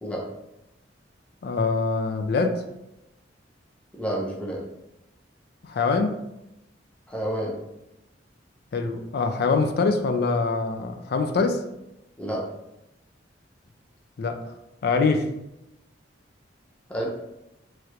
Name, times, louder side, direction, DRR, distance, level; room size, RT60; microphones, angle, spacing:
voice 1, 1.4-2.6 5.6-6.2 8.7-11.6 14.2-14.4 14.8-15.3, left 4 dB, 55° left, 7 dB, 0.4 m, -24 dB
voice 2, 4.0-4.6 7.1-7.5 12.2-12.4 16.9-17.1, right 1 dB, 5° left, -4 dB, 0.5 m, -29 dB
3.1 x 2.4 x 2.8 m, 0.88 s
head